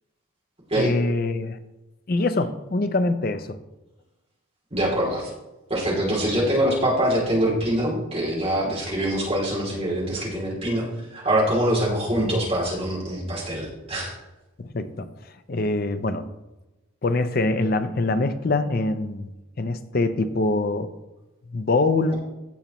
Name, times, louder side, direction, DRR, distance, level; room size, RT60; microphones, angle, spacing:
voice 1, 0.8-1.6 2.1-3.6 14.6-15.1 15.5-16.3 17.0-19.3 19.6-20.9 21.5-22.1, left 2 dB, 45° left, 10 dB, 0.5 m, -24 dB
voice 2, 4.7-5.3 5.7-14.2, right 1 dB, 30° right, -5 dB, 2.8 m, -24 dB
15.5 x 5.5 x 3.0 m, 1.0 s
head